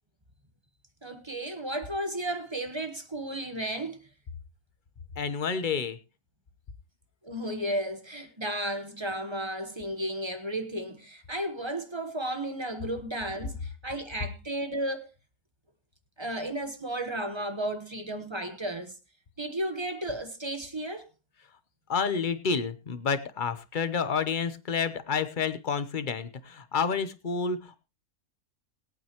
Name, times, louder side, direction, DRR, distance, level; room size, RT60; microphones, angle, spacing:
voice 1, 1.0-4.1 7.2-15.1 16.2-19.0 19.4-21.1, right 1 dB, 20° right, 1.2 m, -33 dB
voice 2, 5.2-6.0 21.9-27.8, left 5 dB, 40° left, 0.9 m, -29 dB
21.0 x 8.9 x 3.0 m
omnidirectional pair, 1.6 m